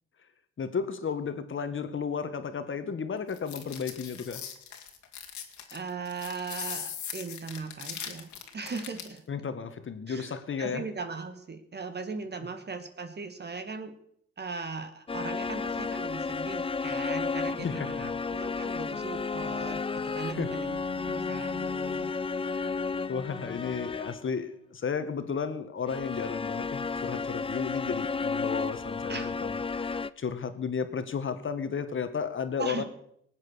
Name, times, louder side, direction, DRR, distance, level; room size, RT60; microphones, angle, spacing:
voice 1, 0.6-4.4 9.3-10.9 17.6-18.1 20.2-20.5 22.5-22.7 23.1-32.8, left 6 dB, 40° left, 1.7 m, -33 dB
sound 1, 3.3-9.2, left 8 dB, 70° left, 2.3 m, -40 dB
voice 2, 5.7-9.2 10.1-13.9 14.4-22.4 29.1-29.3 32.6-32.8, right 4 dB, 35° right, 1.6 m, -39 dB
sound 2, 15.1-24.3 25.9-30.1, left 4 dB, 20° left, 0.5 m, -32 dB
19.5 x 8.1 x 6.4 m
cardioid pair, 90°, 30 cm